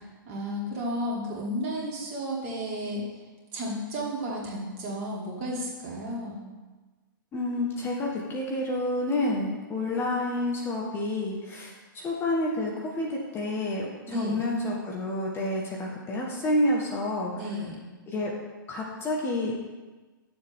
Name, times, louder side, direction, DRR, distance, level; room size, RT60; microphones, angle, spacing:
voice 1, 0.3-3.0 3.5-6.4 14.1-14.4 17.3-17.7, equal, 35° right, -3 dB, 2.7 m, -32 dB
voice 2, 7.3-17.3 18.1-18.3 18.7-19.6, left 1 dB, 20° left, -2 dB, 1.5 m, -29 dB
11.0 x 7.1 x 3.7 m, 1.3 s
figure-of-eight pair, 115°, 12 cm